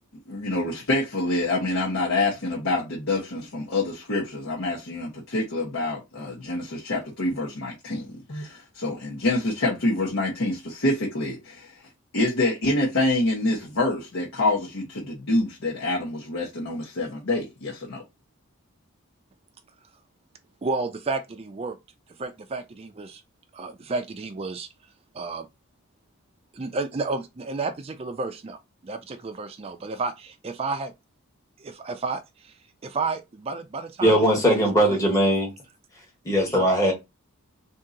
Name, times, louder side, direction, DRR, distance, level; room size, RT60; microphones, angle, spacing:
voice 1, 0.3-11.7 12.1-18.0, left 2 dB, 65° left, 1.0 m, -26 dB
voice 2, 20.6-21.8 22.2-23.2 23.5-24.7 25.1-25.5 26.5-30.9 31.6-32.5 32.8-34.2 34.5-35.0 36.6-36.7, right 3 dB, 25° right, 0.4 m, -31 dB
voice 3, 34.0-35.5 36.2-36.9, equal, 15° left, 1.0 m, -20 dB
2.7 x 2.7 x 3.7 m
head